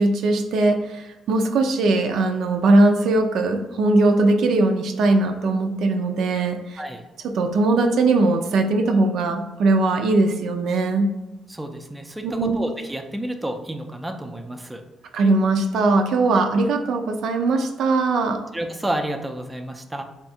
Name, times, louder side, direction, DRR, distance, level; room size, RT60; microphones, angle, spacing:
voice 1, 0.0-6.8 7.2-11.1 12.2-12.6 15.1-18.4, right 2 dB, 75° right, 5 dB, 0.4 m, -20 dB
voice 2, 11.5-14.8 18.5-20.0, right 1 dB, 10° right, 4 dB, 0.4 m, -30 dB
3.5 x 2.3 x 4.1 m, 1.0 s
cardioid pair, 90°, 0 cm